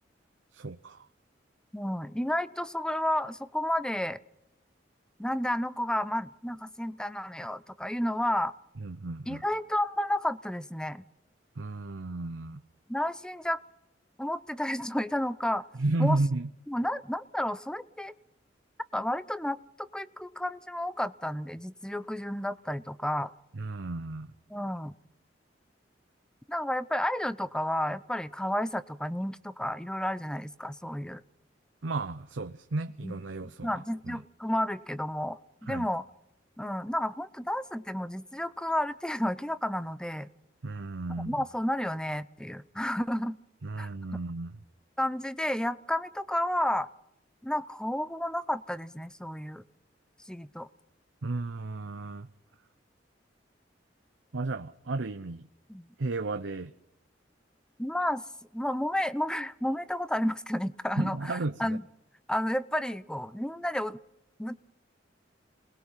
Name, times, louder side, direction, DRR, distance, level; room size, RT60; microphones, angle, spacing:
voice 1, 0.5-1.1 8.8-9.4 11.6-12.6 15.8-16.5 23.5-24.3 31.8-34.2 35.7-35.9 40.6-41.4 43.6-44.6 51.2-52.3 54.3-55.5 56.0-56.7 61.0-61.8, right 2 dB, 90° right, 8 dB, 0.8 m, -33 dB
voice 2, 1.7-4.2 5.2-8.5 9.3-11.0 12.9-13.6 14.2-15.7 16.0-16.2 16.7-18.1 18.9-23.3 24.5-24.9 26.5-31.2 33.0-33.2 33.6-36.1 36.6-40.3 41.2-43.4 43.8-43.9 45.0-46.9 47.4-49.6 50.3-50.7 55.7-55.9 57.8-58.2 58.5-61.8 62.3-64.0 64.4-64.5, left 1 dB, 5° left, 15 dB, 0.7 m, -31 dB
27.5 x 20.0 x 5.7 m, 0.86 s
head